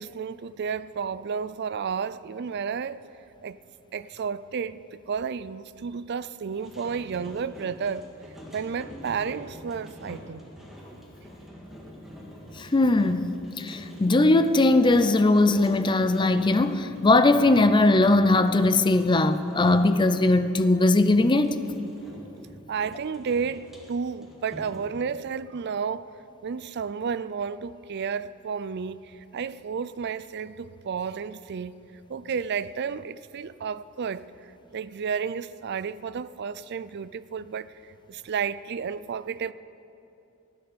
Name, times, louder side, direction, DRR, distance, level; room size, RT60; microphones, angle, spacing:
voice 1, 0.0-3.0 3.4-3.6 3.9-4.8 5.1-8.1 8.5-10.4 22.7-26.1 26.4-31.8 32.1-34.3 34.7-39.5, right 6 dB, 55° right, 0.4 m, -32 dB
sound 1, 6.4-20.5 21.2-24.9, equal, ahead, 2.1 m, -46 dB
voice 2, 12.6-21.6, left 2 dB, 25° left, 0.5 m, -20 dB
15.0 x 10.5 x 6.8 m
head